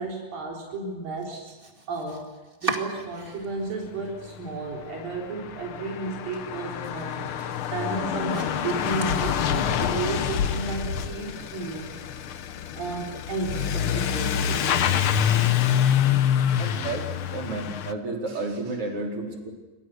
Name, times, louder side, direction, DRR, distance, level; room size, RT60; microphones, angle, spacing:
voice 1, 0.0-1.5 1.9-2.3 2.6-11.9 12.7-15.0 16.5-16.7 18.3-18.6, right 3 dB, 85° right, -2 dB, 5.8 m, -33 dB
Domestic sounds home sounds, 1.1-3.7 4.0-4.8 5.1-5.2 5.7-5.8 6.1-9.8, right 2 dB, 20° right, 1.9 m, -39 dB
Truck / Accelerating revving vroom, 4.3-4.4 4.5-17.9, left 9 dB, 80° left, 1.1 m, -26 dB
voice 2, 9.6-10.0 16.6-19.5, right 2 dB, 40° right, 1 dB, 5.0 m, -32 dB
29.5 x 24.0 x 6.4 m, 1.2 s
omnidirectional pair, 3.9 m